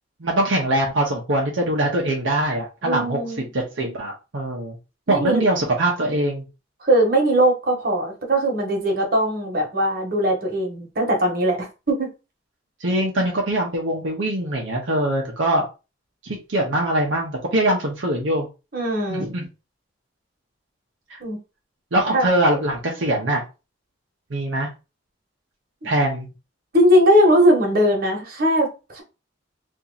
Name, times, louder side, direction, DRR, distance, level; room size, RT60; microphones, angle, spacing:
voice 1, 0.2-3.2 3.5-4.8 5.1-6.4 12.8-15.7 16.2-18.5 19.1-19.5 21.1-21.2 21.9-23.4 24.3-24.7 25.8-26.3, right 1 dB, 80° right, 0.8 m, -22 dB
voice 2, 2.8-3.5 5.1-5.4 6.8-12.1 18.7-19.3 21.2-21.4 22.1-22.3 25.8-25.9 26.7-29.0, equal, 50° right, 1.3 m, -20 dB
2.8 x 2.6 x 3.9 m
head